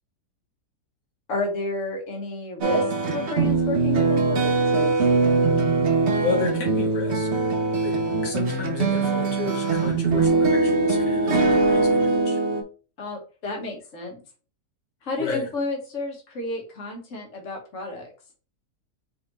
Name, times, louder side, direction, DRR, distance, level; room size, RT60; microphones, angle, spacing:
voice 1, 1.3-2.8 3.1-4.9 13.0-14.2 15.0-18.1, left 2 dB, 50° left, 1 dB, 1.6 m, -31 dB
sound 1, 2.6-12.6, right 3 dB, 50° right, 1.0 m, -22 dB
voice 2, 6.2-7.4 7.8-12.4 15.2-15.5, left 5 dB, 85° left, 1 dB, 2.0 m, -33 dB
4.6 x 3.5 x 3.0 m, 0.37 s
omnidirectional pair, 1.8 m